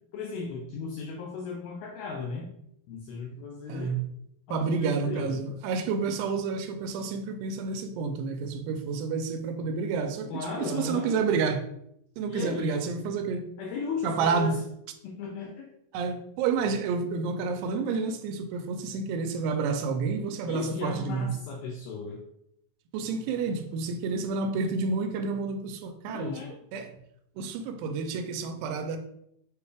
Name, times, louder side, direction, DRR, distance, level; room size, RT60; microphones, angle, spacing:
voice 1, 0.1-2.5 2.9-3.9 4.5-5.4 10.3-11.1 12.3-12.8 13.6-14.6 15.0-15.7 20.5-22.2 26.1-26.6, left 4 dB, 85° left, 2.1 m, -36 dB
voice 2, 3.7-4.1 4.5-11.6 12.2-13.5 14.0-14.5 15.9-21.4 22.9-26.3 26.7-26.9 27.4-29.0, right 4 dB, 85° right, 2.6 m, -29 dB
6.7 x 2.3 x 3.4 m
omnidirectional pair, 4.7 m